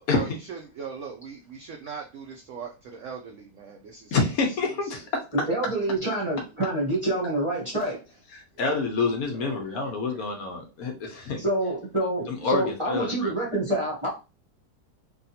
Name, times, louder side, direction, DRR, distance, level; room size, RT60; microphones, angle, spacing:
voice 1, 0.1-4.2 4.8-5.0 6.0-6.1 9.3-10.3, right 6 dB, 75° right, 3 dB, 0.7 m, -40 dB
voice 2, 4.1-5.0 8.3-11.4 12.3-13.3, left 4 dB, 65° left, 2 dB, 1.1 m, -27 dB
voice 3, 5.3-8.0 11.4-14.1, right 1 dB, 25° right, -4 dB, 0.7 m, -27 dB
3.5 x 2.3 x 2.7 m, 0.30 s
omnidirectional pair, 1.8 m